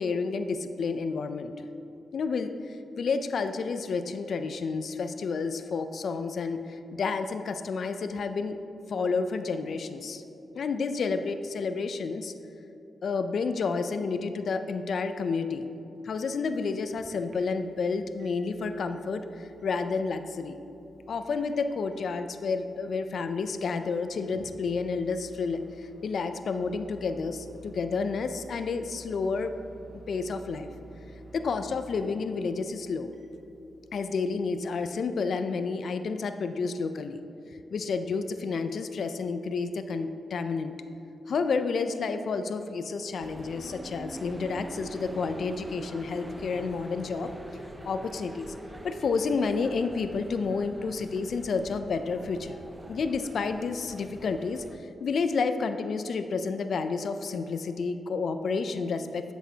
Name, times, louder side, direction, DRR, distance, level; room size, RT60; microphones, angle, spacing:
voice 1, 0.0-1.5 2.1-2.5 3.0-8.6 8.9-10.2 10.5-12.3 13.0-15.7 16.0-20.6 21.1-29.5 30.1-30.7 31.3-33.1 33.9-37.2 37.7-40.7 41.3-47.3 47.8-48.5 48.8-52.6 52.9-54.6 55.0-59.3, left 4 dB, 70° left, 9 dB, 0.3 m, -30 dB
Microwave oven, 16.1-35.4, right 2 dB, 65° right, 1.1 m, -53 dB
sound 1, 43.2-54.8, right 1 dB, 20° right, 0.5 m, -43 dB
7.9 x 6.1 x 2.8 m, 2.9 s
cardioid pair, 60°, 0 cm